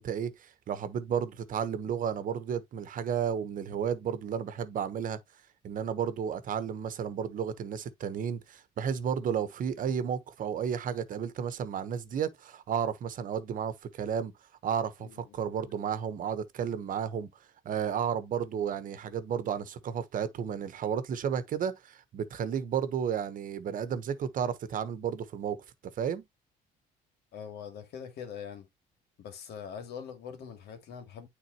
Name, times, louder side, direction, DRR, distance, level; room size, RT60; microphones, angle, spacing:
voice 1, 0.0-5.2 5.6-14.3 14.6-17.3 17.6-25.6 26.0-26.2, right 8 dB, 55° right, 1.1 m, -32 dB
voice 2, 15.0-15.4 27.3-28.7 29.2-31.3, left 7 dB, 75° left, 2.4 m, -43 dB
9.3 x 3.9 x 3.0 m
cardioid pair, 110°, 17 cm